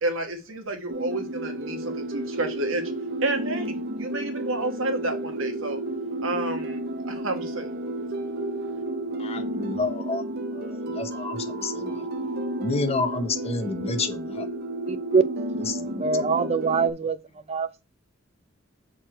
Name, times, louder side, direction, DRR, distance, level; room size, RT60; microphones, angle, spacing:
voice 1, 0.0-2.9 3.2-5.8 6.2-7.7, right 2 dB, 75° right, 1.5 m, -30 dB
sound 1, 0.9-16.9, right 1 dB, 50° right, 0.8 m, -32 dB
voice 2, 9.2-10.2 10.5-12.0 12.6-14.5 15.7-16.0, left 3 dB, 30° left, 0.9 m, -30 dB
voice 3, 14.9-15.2 16.0-17.2 17.5-17.9, right 5 dB, 30° right, 0.5 m, -23 dB
6.5 x 4.6 x 4.4 m
head